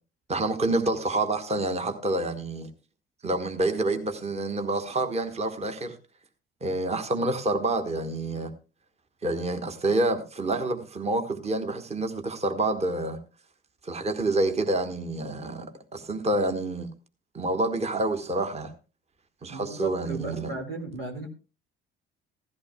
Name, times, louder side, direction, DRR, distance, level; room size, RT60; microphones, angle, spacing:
voice 1, 0.3-2.7 3.2-6.0 6.6-8.5 9.2-13.2 13.8-16.9 17.3-18.7 19.4-20.5, right 2 dB, 20° right, 1.3 m, -28 dB
voice 2, 19.5-21.3, right 2 dB, 80° right, 2.0 m, -35 dB
16.0 x 14.5 x 2.2 m
figure-of-eight pair, 55°, 30 cm